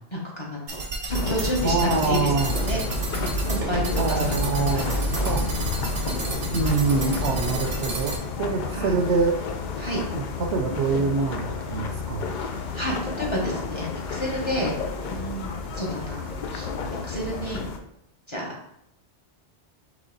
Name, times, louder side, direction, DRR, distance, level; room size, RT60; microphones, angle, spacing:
voice 1, 0.1-0.8 1.1-2.8 3.4-4.9 5.2-5.3 8.0-8.1 8.7-8.9 9.8-10.0 12.7-14.7 15.1-16.2 16.5-16.7 17.0-17.6 18.3-18.6, equal, 25° left, -4 dB, 0.9 m, -30 dB
sound 1, 0.7-8.2, right 3 dB, 90° right, 1.2 m, -32 dB
sound 2, 1.1-17.8, left 3 dB, 55° left, 0.5 m, -30 dB
voice 2, 1.6-2.5 4.0-5.5 6.5-9.5 10.1-12.3, right 4 dB, 70° right, 4 dB, 0.9 m, -25 dB
4.1 x 3.3 x 3.8 m, 0.78 s
omnidirectional pair, 1.2 m